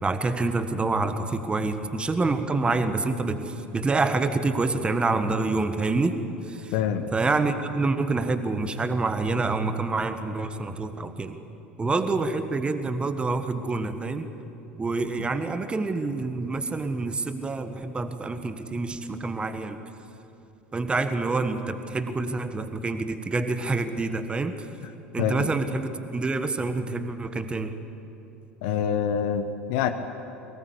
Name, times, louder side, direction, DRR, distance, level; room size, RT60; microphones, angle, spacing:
voice 1, 0.0-6.2 7.1-11.3 11.8-14.3 14.8-19.8 20.7-24.6 25.1-27.7, right 3 dB, 15° right, 9 dB, 1.4 m, -27 dB
voice 2, 6.7-7.1 15.2-15.3 24.8-24.9 25.2-25.5 28.6-29.9, left 8 dB, 55° left, 8 dB, 1.1 m, -26 dB
23.0 x 19.0 x 8.4 m, 2.9 s
figure-of-eight pair, 75°, 6 cm